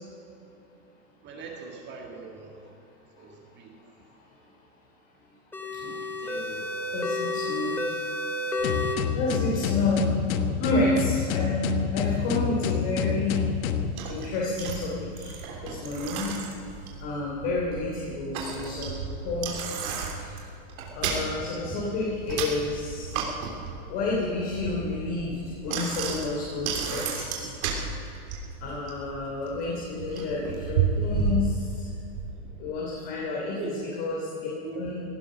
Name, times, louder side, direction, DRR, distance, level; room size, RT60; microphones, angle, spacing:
voice 1, 1.2-2.7 3.2-3.7 6.0-6.7 21.7-21.8 32.3-32.6 33.4-33.8 34.6-34.8, right 4 dB, 25° right, 1 dB, 2.0 m, -41 dB
sound 1, 5.5-9.0, left 2 dB, 5° left, 0.7 m, -30 dB
voice 2, 6.9-7.9 8.7-13.5 14.1-16.3 17.0-19.5 20.1-20.3 20.9-23.2 23.9-27.5 28.6-31.9 32.6-33.6 34.0-34.5 34.7-35.0, left 2 dB, 40° left, -4 dB, 3.4 m, -30 dB
sound 2, 8.6-13.9, left 8 dB, 70° left, 1.3 m, -28 dB
Bicycle, 13.4-32.3, right 5 dB, 70° right, 3.3 m, -33 dB
17.5 x 11.5 x 6.4 m, 2.8 s
supercardioid pair, 155°, 44 cm